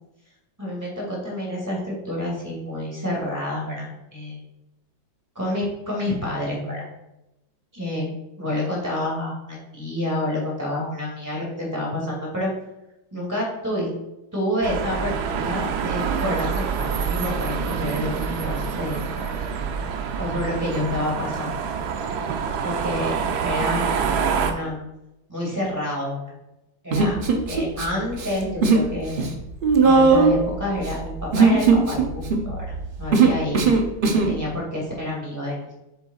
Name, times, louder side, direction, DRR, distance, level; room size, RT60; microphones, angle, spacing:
voice 1, 0.6-4.4 5.3-6.9 7.7-12.5 13.1-13.9 14.3-19.3 20.2-21.5 22.6-23.2 23.4-23.8 24.3-24.8 25.3-26.4 26.8-27.2 27.5-29.3 29.8-33.8 34.1-35.7, left 1 dB, 10° right, -3 dB, 2.3 m, -28 dB
sound 1, 14.6-24.5, right 6 dB, 70° right, 1.1 m, -26 dB
Human voice, 26.9-27.9 28.1-28.9 29.1-34.3, right 4 dB, 90° right, 0.4 m, -18 dB
7.8 x 7.0 x 2.4 m, 0.93 s
omnidirectional pair, 2.1 m